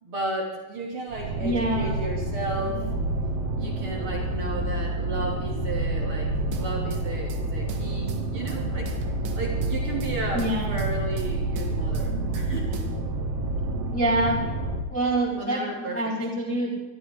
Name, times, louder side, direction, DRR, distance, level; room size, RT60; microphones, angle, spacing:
voice 1, 0.0-2.8 3.5-6.3 6.6-8.9 9.3-12.9 15.3-16.1, right 2 dB, 35° right, -1 dB, 2.6 m, -34 dB
sound 1, 1.1-14.8, right 2 dB, 90° right, 4.0 m, -28 dB
voice 2, 1.4-1.9 10.3-10.7 13.9-14.5 14.9-16.8, right 1 dB, ahead, -7 dB, 3.2 m, -26 dB
sound 2, 6.5-7.4 7.7-8.6 8.9-10.1 10.4-11.3 11.6-12.5 12.7-12.9, right 5 dB, 70° right, 3.5 m, -41 dB
24.0 x 13.5 x 3.8 m, 1.2 s
omnidirectional pair, 5.9 m